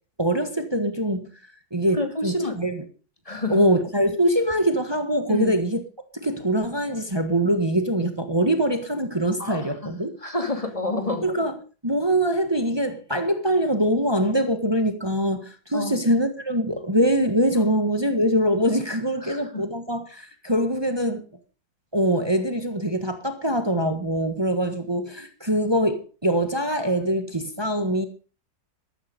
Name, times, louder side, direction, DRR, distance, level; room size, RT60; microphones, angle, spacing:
voice 1, 0.2-1.3 1.7-2.8 3.5-5.8 6.2-10.1 11.2-11.6 11.8-21.2 21.9-28.0, right 1 dB, 15° right, 1.6 m, -23 dB
voice 2, 1.9-2.6 3.3-3.6 5.3-5.5 9.4-11.3 15.7-15.9 19.2-19.6, left 2 dB, 20° left, 2.5 m, -29 dB
13.0 x 13.0 x 5.3 m
omnidirectional pair, 1.7 m